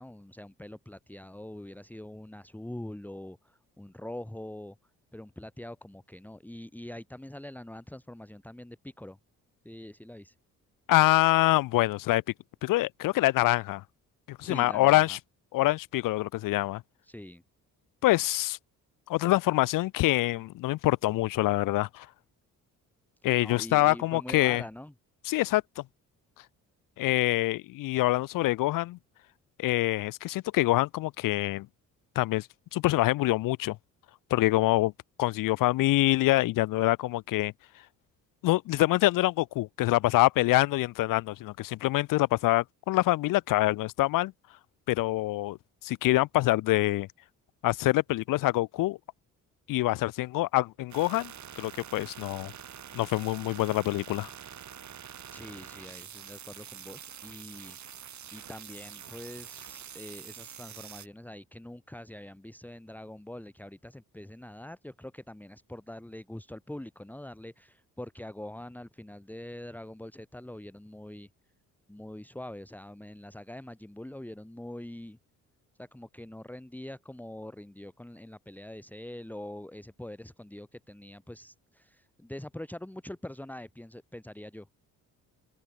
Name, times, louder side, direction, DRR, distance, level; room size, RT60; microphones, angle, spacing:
voice 1, 0.0-4.8 5.1-9.2 9.6-10.4 14.4-15.2 17.0-17.4 23.4-24.9 55.3-71.3 71.9-75.2 75.8-84.7, left 1 dB, 5° left, 1.8 m, -44 dB
voice 2, 10.9-12.2 12.6-13.8 14.3-15.2 15.5-16.8 18.0-18.6 19.1-22.1 23.2-24.6 25.3-25.8 27.0-29.0 29.6-31.7 32.2-33.8 34.3-34.9 35.2-37.5 38.4-44.3 44.9-45.6 45.8-47.1 47.6-49.0 49.7-52.5 52.9-54.3, left 17 dB, 75° left, 0.6 m, -25 dB
sound 1, 50.9-61.1, right 9 dB, 60° right, 6.0 m, -46 dB
open air
cardioid pair, 80°, 33 cm